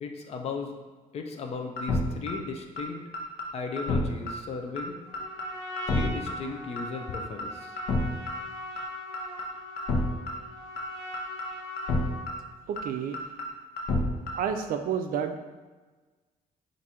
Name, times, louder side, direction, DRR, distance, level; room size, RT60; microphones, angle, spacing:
voice 1, 0.0-0.7 1.1-3.0 3.5-5.0 5.9-7.8, left 4 dB, 45° left, 3 dB, 0.5 m, -36 dB
sound 1, 1.8-2.0 2.3-2.4 2.8-2.9 3.1-3.4 3.8-4.0 4.3-4.4 4.8-4.9 5.1-5.4 5.8-6.0 6.3-6.4 6.8-6.9 7.1-7.4 7.8-8.0 8.3-8.4 8.8-8.9 9.1-9.4 9.8-10.0 10.3-10.4 10.8-10.9 11.1-11.4 11.8-12.0 12.3-12.4 12.8-12.9 13.1-13.4 13.8-14.0 14.3-14.4, left 3 dB, 85° left, 0.8 m, -28 dB
Trumpet, 5.1-12.4, left 2 dB, 25° right, 1.1 m, -41 dB
voice 2, 12.7-13.2 14.3-15.4, right 7 dB, 70° right, 7 dB, 0.4 m, -30 dB
4.8 x 2.6 x 4.2 m, 1.3 s
cardioid pair, 155°, 15 cm